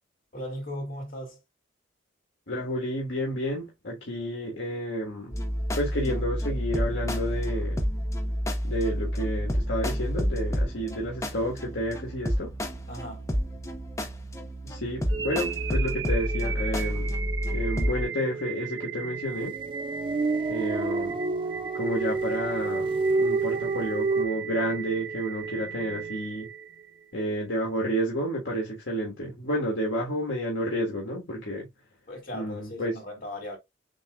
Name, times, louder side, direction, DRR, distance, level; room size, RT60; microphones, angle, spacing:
voice 1, 0.3-1.4 12.9-13.3 32.1-33.6, left 1 dB, 50° left, 3.0 m, -37 dB
voice 2, 2.5-5.3 5.7-7.8 8.6-12.5 14.6-17.1 17.5-19.6 20.5-21.2 21.7-22.9 23.2-26.5 27.1-31.7 32.3-32.9, equal, 75° left, 1.5 m, -30 dB
sound 1, 5.3-18.0, equal, 15° left, 0.8 m, -29 dB
sound 2, 15.1-27.1, right 7 dB, 65° right, 0.6 m, -36 dB
sound 3, 19.5-24.3, right 3 dB, 25° right, 0.3 m, -28 dB
6.9 x 2.8 x 2.3 m
head